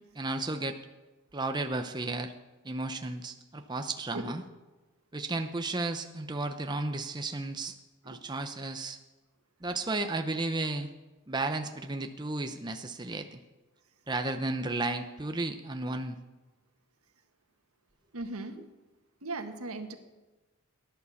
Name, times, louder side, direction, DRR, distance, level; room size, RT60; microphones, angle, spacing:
voice 1, 0.1-0.8 1.3-2.3 2.6-4.4 5.1-7.7 8.0-9.0 9.6-10.9 11.3-13.4 14.1-16.2 18.6-18.7, right 2 dB, 20° right, 6 dB, 0.7 m, -33 dB
voice 2, 18.1-18.6 19.2-20.0, right 2 dB, 85° right, 6 dB, 1.6 m, -37 dB
18.0 x 11.0 x 7.1 m, 1.2 s
head